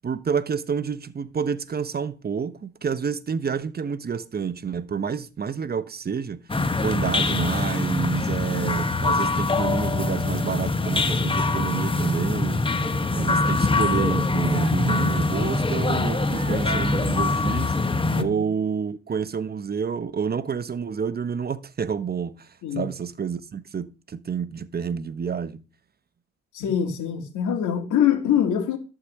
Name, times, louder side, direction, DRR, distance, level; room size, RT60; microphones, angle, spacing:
voice 1, 0.0-6.4 6.8-12.6 13.1-22.5 22.7-25.6, right 6 dB, 30° right, 0.8 m, -29 dB
sound 1, 6.5-18.2, left 3 dB, 15° left, 1.1 m, -23 dB
sound 2, 14.5-15.1 15.5-15.6 16.3-17.0, right 6 dB, 55° right, 1.3 m, -40 dB
voice 2, 18.1-18.5 22.6-22.9 26.5-28.8, left 9 dB, 80° left, 2.8 m, -24 dB
11.5 x 4.9 x 7.3 m
cardioid pair, 90°, 30 cm